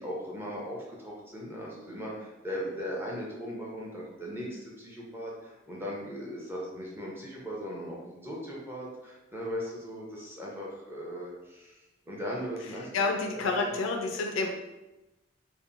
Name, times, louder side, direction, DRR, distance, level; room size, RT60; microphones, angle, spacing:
voice 1, 0.0-11.8 12.1-12.9 13.3-13.7, equal, 10° right, -4 dB, 0.6 m, -38 dB
voice 2, 12.9-14.5, left 3 dB, 90° left, 3 dB, 0.3 m, -29 dB
2.9 x 2.1 x 2.5 m, 1.0 s
head